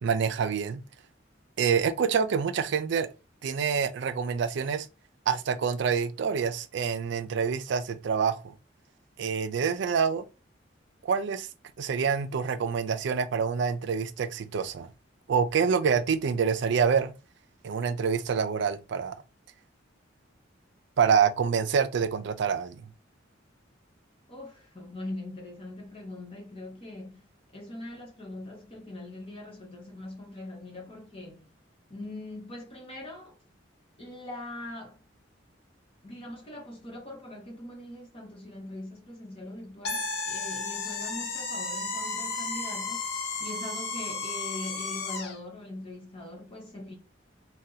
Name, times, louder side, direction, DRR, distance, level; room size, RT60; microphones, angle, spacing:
voice 1, 0.0-0.8 1.6-3.1 3.4-4.9 5.3-8.5 9.2-10.3 11.0-11.5 11.8-14.9 15.3-17.1 17.6-19.2 21.0-22.9, right 6 dB, 70° right, 0.4 m, -26 dB
voice 2, 24.3-27.3 27.5-31.5 31.9-33.3 34.0-35.0 36.0-46.9, left 1 dB, 30° left, 1.1 m, -42 dB
sound 1, 39.8-45.4, left 3 dB, 60° left, 0.7 m, -33 dB
2.7 x 2.3 x 3.8 m
head